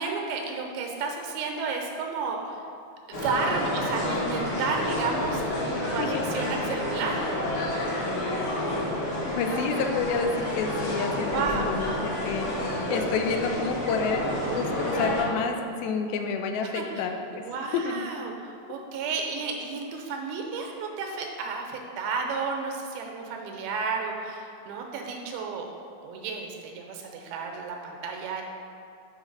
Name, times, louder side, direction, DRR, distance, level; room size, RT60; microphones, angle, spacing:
voice 1, 0.0-2.6 3.1-7.3 11.3-11.7 16.7-16.8 17.3-18.3 18.7-25.7 26.0-28.4, right 4 dB, 85° right, 2 dB, 2.7 m, -32 dB
sound 1, 3.1-15.2, left 1 dB, 50° left, 1.9 m, -29 dB
voice 2, 5.7-6.2 9.3-14.3 14.5-18.0, left 5 dB, 90° left, 5 dB, 2.4 m, -29 dB
7.9 x 4.1 x 5.3 m, 2.5 s
omnidirectional pair, 4.2 m